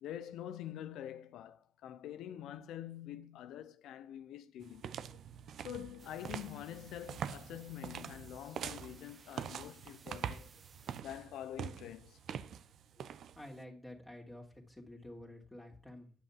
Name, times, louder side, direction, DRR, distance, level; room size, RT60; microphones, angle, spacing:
voice 1, 0.0-4.9 5.6-10.5 11.0-12.2, left 11 dB, 85° left, 0.7 m, -46 dB
sound 1, 4.6-13.6, right 8 dB, 65° right, 0.7 m, -45 dB
sound 2, 6.0-11.0, right 5 dB, 40° right, 1.0 m, -61 dB
voice 2, 13.3-16.1, left 1 dB, 10° left, 2.8 m, -50 dB
9.9 x 5.6 x 7.3 m
cardioid pair, 90°, 0 cm